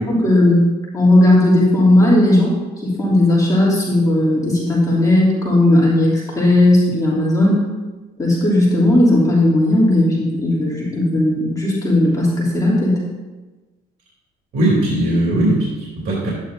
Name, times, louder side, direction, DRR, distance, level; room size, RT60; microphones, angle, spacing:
voice 1, 0.1-0.6 0.9-2.6 2.8-7.6 8.2-13.0, left 1 dB, 20° left, -6 dB, 3.1 m, -15 dB
voice 2, 14.5-16.3, right 1 dB, 65° right, -5 dB, 3.1 m, -18 dB
12.0 x 9.6 x 2.8 m, 1.2 s
cardioid pair, 110°, 17 cm